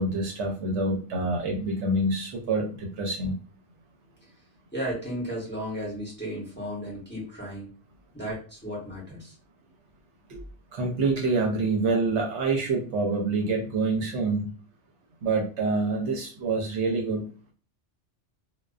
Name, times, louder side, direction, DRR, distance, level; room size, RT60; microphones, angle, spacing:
voice 1, 0.0-3.3 10.3-10.4 10.7-14.5 15.2-17.3, right 3 dB, 70° right, 1 dB, 0.8 m, -26 dB
voice 2, 4.7-7.7 8.1-9.3, equal, 10° left, -5 dB, 0.8 m, -34 dB
2.3 x 2.3 x 2.3 m, 0.38 s
omnidirectional pair, 1.3 m